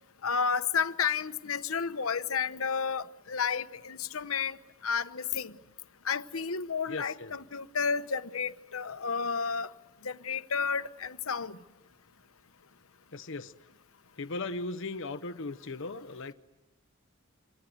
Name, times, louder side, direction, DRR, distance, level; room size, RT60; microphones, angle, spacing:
voice 1, 0.2-4.6 4.8-5.5 6.0-9.7 10.0-11.6, left 6 dB, 90° left, 1.0 m, -31 dB
voice 2, 6.9-7.4 13.1-13.5 14.2-16.3, left 3 dB, 65° left, 0.9 m, -37 dB
27.5 x 26.0 x 8.0 m
head